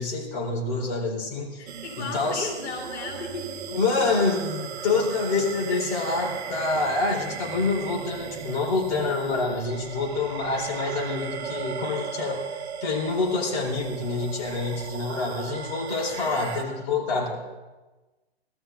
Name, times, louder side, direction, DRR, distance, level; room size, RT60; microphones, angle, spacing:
voice 1, 0.0-1.6 2.0-2.5 3.7-12.4 12.8-17.3, left 3 dB, 40° left, -2 dB, 4.4 m, -27 dB
voice 2, 1.6-3.6 5.7-5.8 16.1-16.7, left 4 dB, 80° left, 0 dB, 2.7 m, -36 dB
sound 1, 1.7-16.6, right 7 dB, 75° right, 1.6 m, -37 dB
19.5 x 13.5 x 3.9 m, 1.2 s
hypercardioid pair, 150°, 32 cm